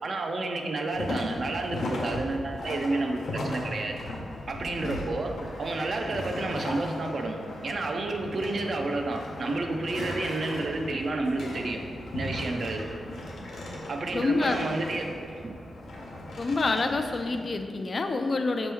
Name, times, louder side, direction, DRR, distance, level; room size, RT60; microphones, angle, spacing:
voice 1, 0.0-4.0 4.5-5.3 5.6-11.8 12.1-12.8 13.9-15.2 15.4-15.6, right 2 dB, 55° right, 2 dB, 0.4 m, -30 dB
sound 1, 0.9-17.4, left 1 dB, 85° left, 0.7 m, -37 dB
voice 2, 14.1-14.6 16.4-18.7, left 3 dB, 45° left, 7 dB, 0.3 m, -27 dB
5.2 x 2.9 x 3.4 m, 2.3 s
cardioid pair, 90°, 0 cm